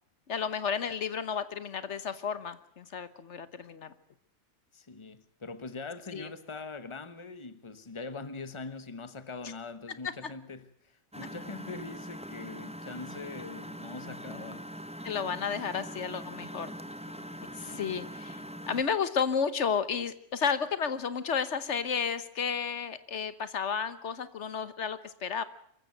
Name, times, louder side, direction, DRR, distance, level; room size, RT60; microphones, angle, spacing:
voice 1, 0.3-3.9 6.1-6.3 15.0-16.7 17.6-18.4 18.7-25.4, left 6 dB, 75° left, 1.4 m, -32 dB
voice 2, 4.7-14.7 17.5-17.9, left 4 dB, 25° left, 1.2 m, -42 dB
Engine, 11.1-18.8, equal, 5° right, 1.0 m, -42 dB
25.0 x 15.0 x 7.8 m
omnidirectional pair, 1.2 m